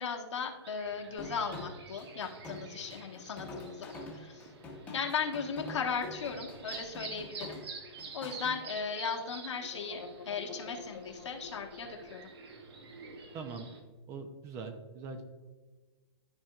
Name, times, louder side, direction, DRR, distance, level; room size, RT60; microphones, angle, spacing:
voice 1, 0.0-4.3 4.9-7.6 8.1-12.3, left 6 dB, 85° left, 2 dB, 1.4 m, -37 dB
sound 1, 0.6-13.8, right 4 dB, 60° right, 1.2 m, -49 dB
sound 2, 1.2-8.6, left 2 dB, 10° left, 1.0 m, -46 dB
sound 3, 5.7-8.2 8.5-8.6 9.6-12.3, left 5 dB, 55° left, 1.0 m, -50 dB
voice 2, 13.3-13.7 14.1-15.2, right 4 dB, 20° right, 7 dB, 0.6 m, -42 dB
13.0 x 4.4 x 2.4 m, 1.3 s
hypercardioid pair, 160°, 15 cm